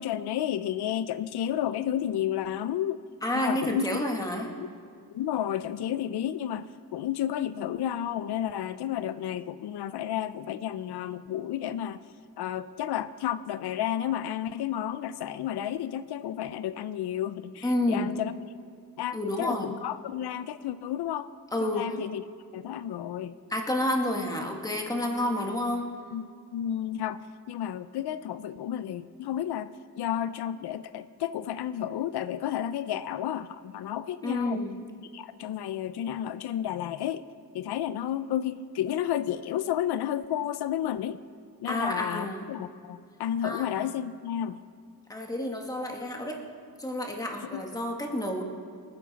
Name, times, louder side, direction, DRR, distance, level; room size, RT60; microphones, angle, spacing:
voice 1, 0.0-3.0 3.3-4.0 4.6-4.7 5.1-12.0 12.4-18.3 19.0-21.3 21.6-22.2 22.5-23.3 26.1-26.2 26.5-29.7 30.0-34.6 35.1-37.2 37.5-41.2 41.6-44.6 47.5-47.7, left 10 dB, 90° left, 14 dB, 0.6 m, -31 dB
voice 2, 3.2-4.5 17.6-18.0 19.1-19.7 21.5-21.9 23.5-25.9 34.2-34.7 41.7-42.5 43.4-43.6 45.1-46.4 46.8-48.4, left 1 dB, 10° left, 1 dB, 1.4 m, -29 dB
25.5 x 9.7 x 4.1 m, 2.3 s
wide cardioid pair, 175°, 38 cm